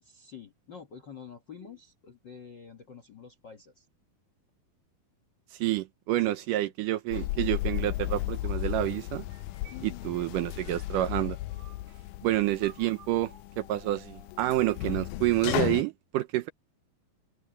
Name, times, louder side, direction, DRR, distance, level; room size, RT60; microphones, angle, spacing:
voice 1, 0.0-3.8 6.2-6.7 7.1-7.3 9.7-10.1, left 7 dB, 55° left, 1.2 m, -48 dB
voice 2, 5.5-9.3 9.8-11.4 12.2-16.5, right 15 dB, 75° right, 2.1 m, -28 dB
sound 1, 7.1-15.8, left 17 dB, 80° left, 1.9 m, -35 dB
sound 2, 9.2-12.1 12.6-14.4, right 8 dB, 60° right, 3.6 m, -56 dB
open air
omnidirectional pair, 4.2 m